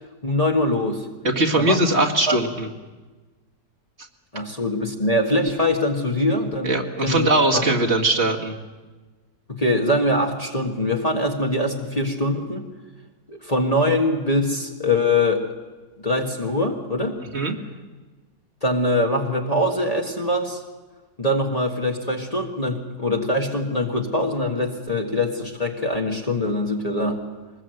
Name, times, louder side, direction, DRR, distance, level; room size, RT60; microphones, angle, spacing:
voice 1, 0.2-1.1 1.6-2.4 4.3-6.7 7.0-7.3 7.5-7.8 9.5-12.6 13.3-15.5 16.0-17.2 18.6-20.6 21.2-27.2, left 1 dB, 25° left, 0 dB, 1.7 m, -23 dB
voice 2, 1.2-2.7 6.6-8.5 17.3-17.6, right 2 dB, 40° right, -1 dB, 2.2 m, -20 dB
22.5 x 20.5 x 7.8 m, 1.3 s
omnidirectional pair, 1.7 m